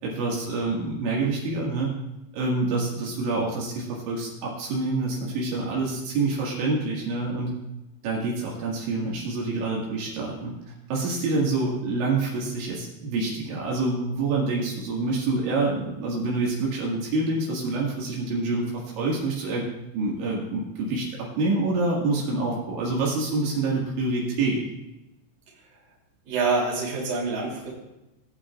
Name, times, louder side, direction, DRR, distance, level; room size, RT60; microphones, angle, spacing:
voice 1, 0.0-1.9 2.3-7.5 8.0-10.5 10.9-18.7 19.0-19.7 19.9-24.6, right 3 dB, 70° right, -4 dB, 4.1 m, -27 dB
voice 2, 26.3-27.7, right 3 dB, 35° right, -3 dB, 3.5 m, -26 dB
19.5 x 9.0 x 2.4 m, 0.95 s
omnidirectional pair, 5.7 m